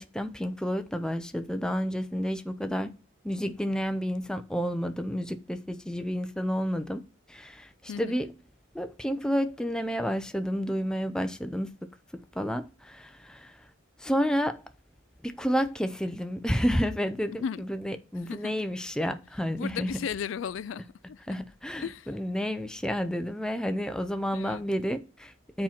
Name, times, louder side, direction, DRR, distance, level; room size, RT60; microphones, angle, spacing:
voice 1, 0.0-2.9 3.2-7.0 7.3-8.3 8.7-11.7 12.1-13.5 14.0-14.6 15.2-20.0 21.3-25.6, equal, 5° left, 0.5 m, -30 dB
voice 2, 7.9-8.2 17.4-17.6 18.3-18.5 19.6-21.4 21.8-22.1 24.3-24.6, left 7 dB, 70° left, 0.3 m, -35 dB
7.2 x 4.4 x 5.7 m
head